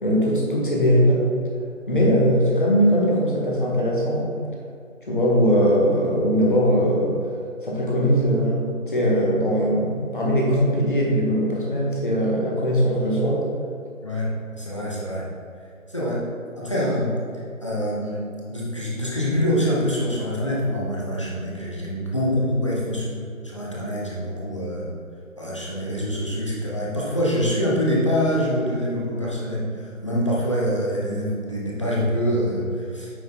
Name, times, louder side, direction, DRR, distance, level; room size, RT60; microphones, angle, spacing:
voice 1, 0.0-1.3 1.9-4.3 5.1-7.2 7.6-13.4, equal, 40° left, -4 dB, 1.7 m, -20 dB
voice 2, 14.0-15.3 15.9-16.3 16.6-17.1 17.6-18.2 18.5-23.2 23.4-24.9 25.4-33.2, equal, 20° left, -6 dB, 1.1 m, -25 dB
9.3 x 4.6 x 4.0 m, 2.4 s
figure-of-eight pair, 165°, 41 cm